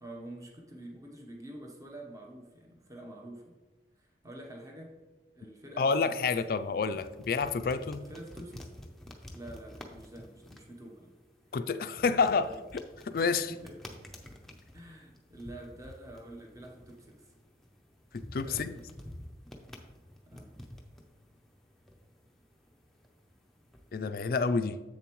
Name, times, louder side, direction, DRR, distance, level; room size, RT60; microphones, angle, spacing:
voice 1, 0.0-3.6 4.0-5.0 5.3-6.2 8.1-8.7 9.3-11.1 12.0-12.6 13.1-13.8 14.7-17.3 18.4-18.9 20.3-20.5, right 1 dB, 20° right, 1 dB, 0.9 m, -47 dB
voice 2, 5.8-8.1 11.5-13.5 18.1-18.7 23.9-24.8, left 4 dB, 55° left, 11 dB, 0.4 m, -29 dB
sound 1, 5.9-24.1, left 1 dB, ahead, 0.6 m, -50 dB
7.6 x 7.0 x 3.0 m, 1.2 s
head